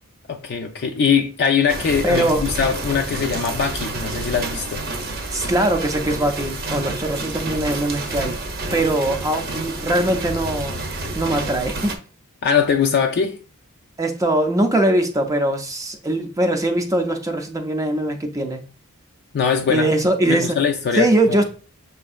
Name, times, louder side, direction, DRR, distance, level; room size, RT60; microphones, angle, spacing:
voice 1, 0.3-4.8 12.4-13.4 19.3-19.9 20.3-21.4, left 6 dB, 50° left, 0.4 m, -21 dB
sound 1, 1.7-12.0, right 2 dB, 45° right, 0.7 m, -29 dB
voice 2, 2.0-2.4 5.3-8.4 8.7-10.8 11.2-11.9 14.0-18.6 19.7-20.6 21.0-21.4, right 1 dB, 15° right, 0.4 m, -21 dB
6.2 x 2.6 x 2.4 m
head